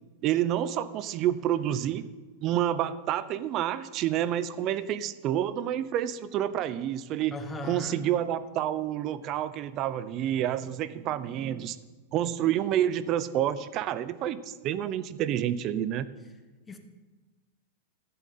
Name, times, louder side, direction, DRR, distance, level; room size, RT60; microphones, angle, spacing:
voice 1, 0.2-2.0 2.4-7.3 7.6-11.8 12.1-16.1, right 11 dB, 30° right, 15 dB, 0.8 m, -28 dB
voice 2, 7.3-8.1 16.7-16.8, left 3 dB, 10° left, 7 dB, 1.2 m, -37 dB
15.0 x 8.3 x 9.3 m, 1.3 s
supercardioid pair, 165°, 0 cm